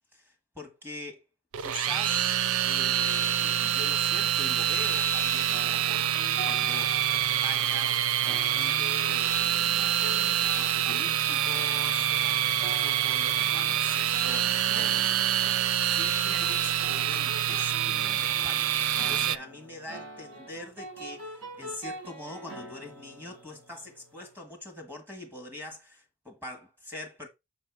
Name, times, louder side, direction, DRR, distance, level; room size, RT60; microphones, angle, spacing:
voice 1, 0.1-1.2 1.6-2.4 2.6-15.4 15.8-27.3, left 2 dB, 10° right, 1.6 m, -43 dB
sound 1, 1.5-19.4, right 11 dB, 65° right, 0.4 m, -26 dB
sound 2, 5.2-24.1, right 1 dB, 85° right, 2.7 m, -45 dB
6.9 x 4.3 x 4.6 m
head